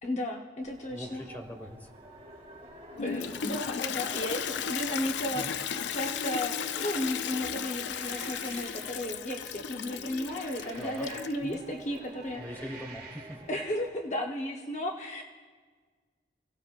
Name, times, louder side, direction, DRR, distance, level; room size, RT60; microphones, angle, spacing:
voice 1, 0.0-1.2 3.0-5.6 5.9-12.6 13.5-15.2, left 1 dB, 40° left, 1 dB, 1.0 m, -34 dB
sound 1, 0.6-13.9, right 1 dB, 35° right, 3.3 m, -50 dB
voice 2, 0.9-1.9 5.3-5.5 10.8-11.1 11.4-11.6 12.4-13.4, equal, 10° left, 4 dB, 1.6 m, -41 dB
Toilet flush, 3.0-11.5, left 7 dB, 90° left, 0.5 m, -35 dB
sound 2, 7.6-9.1 9.9-11.7 12.2-13.5, right 5 dB, 50° right, 1.8 m, -50 dB
29.5 x 17.5 x 2.5 m, 1.5 s
head